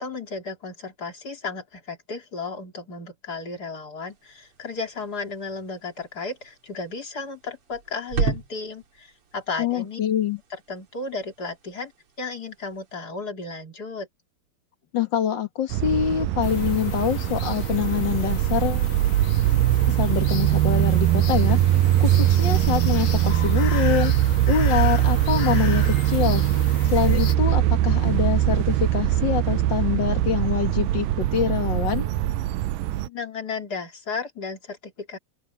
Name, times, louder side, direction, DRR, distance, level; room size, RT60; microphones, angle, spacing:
voice 1, 0.0-10.0 10.5-11.9 12.2-14.1 33.0-35.2, left 4 dB, 25° left, 3.0 m, -34 dB
sound 1, 4.1-13.0, right 4 dB, 40° right, 2.7 m, -36 dB
voice 2, 9.6-10.4 14.9-18.9 19.9-26.4 26.8-32.1, left 9 dB, 75° left, 1.0 m, -25 dB
sound 2, 15.7-33.1, right 13 dB, 75° right, 2.1 m, -21 dB
sound 3, 16.4-27.3, left 6 dB, 50° left, 2.9 m, -37 dB
open air
omnidirectional pair, 4.6 m